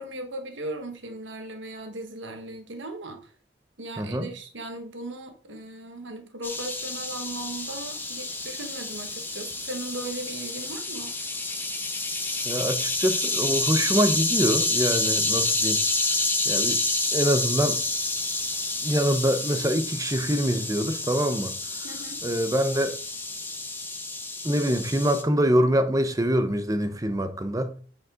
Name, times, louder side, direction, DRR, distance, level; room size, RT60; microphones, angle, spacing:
voice 1, 0.0-3.3 3.8-11.1 21.8-22.2, right 2 dB, 75° right, 1.3 m, -37 dB
voice 2, 4.0-4.3 12.4-15.8 16.4-16.8 17.1-17.8 18.8-21.5 22.2-22.9 24.4-27.7, equal, 20° right, 0.9 m, -24 dB
sound 1, 6.4-25.2, left 2 dB, 10° left, 1.1 m, -29 dB
9.2 x 5.4 x 3.7 m
head